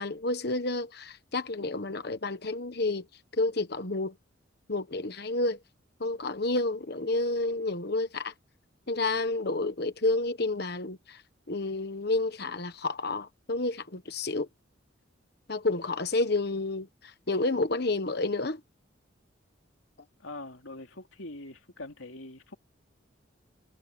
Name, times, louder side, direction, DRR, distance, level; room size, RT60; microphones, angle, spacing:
voice 1, 0.0-3.0 3.4-4.1 4.7-5.6 6.0-8.3 8.9-11.2 11.5-14.5 15.5-16.9 17.3-18.6, left 2 dB, 55° left, 1.3 m, -30 dB
voice 2, 20.2-22.6, left 2 dB, 90° left, 2.9 m, -43 dB
head